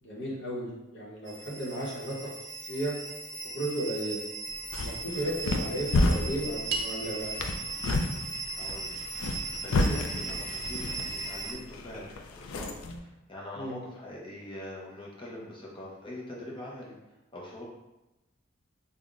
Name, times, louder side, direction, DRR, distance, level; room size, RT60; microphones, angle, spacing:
voice 1, 0.0-2.2 2.7-2.9 3.5-4.2 4.8-7.4 13.6-13.8, right 1 dB, 55° left, -5 dB, 0.9 m, -34 dB
sound 1, 1.3-11.5, right 3 dB, 20° right, 0.8 m, -38 dB
sound 2, 4.5-13.0, left 2 dB, 80° left, 0.4 m, -31 dB
sound 3, 6.7-11.2, right 3 dB, 50° right, 0.4 m, -42 dB
voice 2, 8.5-9.2 9.5-16.9 17.3-17.6, left 1 dB, 25° left, -4 dB, 0.6 m, -43 dB
5.4 x 2.1 x 2.4 m, 1.0 s
head